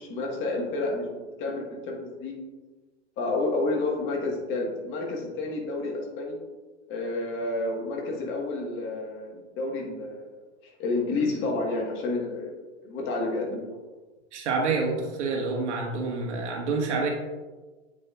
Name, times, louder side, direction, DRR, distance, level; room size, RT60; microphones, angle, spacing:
voice 1, 0.0-2.4 3.2-6.4 6.9-10.3 10.6-13.8, left 2 dB, 35° left, 0 dB, 1.5 m, -30 dB
voice 2, 14.3-17.1, right 4 dB, 85° right, 0 dB, 1.6 m, -27 dB
8.5 x 5.0 x 2.4 m, 1.3 s
hypercardioid pair, 130°, 34 cm